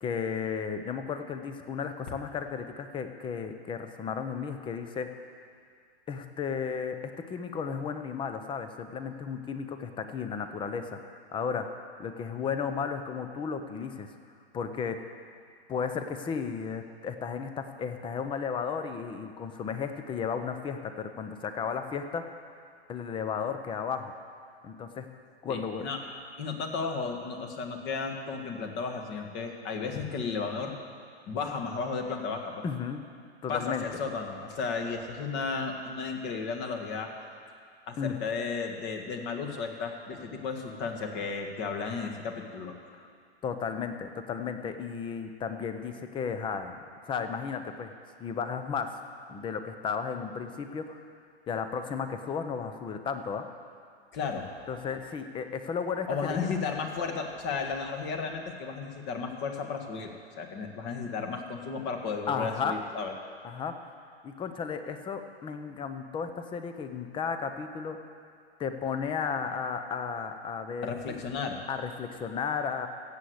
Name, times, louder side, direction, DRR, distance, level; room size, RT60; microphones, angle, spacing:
voice 1, 0.0-5.1 6.1-11.7 12.0-14.1 14.5-15.1 15.7-22.6 22.9-24.1 24.6-25.1 25.4-25.9 32.6-33.0 33.4-33.9 38.0-38.2 43.0-43.1 43.4-46.8 47.1-47.9 48.2-49.0 49.3-51.0 51.5-53.5 54.7-56.4 62.3-62.8 63.4-63.7 64.2-68.0 68.6-71.2 71.7-72.9, left 6 dB, 15° left, 8 dB, 0.8 m, -34 dB
voice 2, 25.5-26.0 26.4-30.7 31.3-32.7 33.5-37.1 37.9-42.7 54.1-54.5 56.1-63.1 70.8-71.6, left 5 dB, 35° left, 4 dB, 1.8 m, -34 dB
15.0 x 8.1 x 8.0 m, 2.2 s
hypercardioid pair, 130°, 33 cm